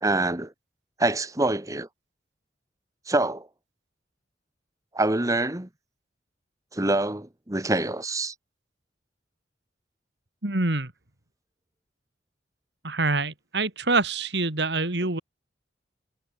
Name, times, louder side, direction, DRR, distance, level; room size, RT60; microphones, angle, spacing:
voice 1, 0.0-0.5 1.0-1.9 3.1-3.5 4.9-5.7 6.7-8.3, right 2 dB, 20° right, 1.3 m, -25 dB
voice 2, 10.4-10.9 12.8-15.2, right 3 dB, 65° right, 2.6 m, -25 dB
head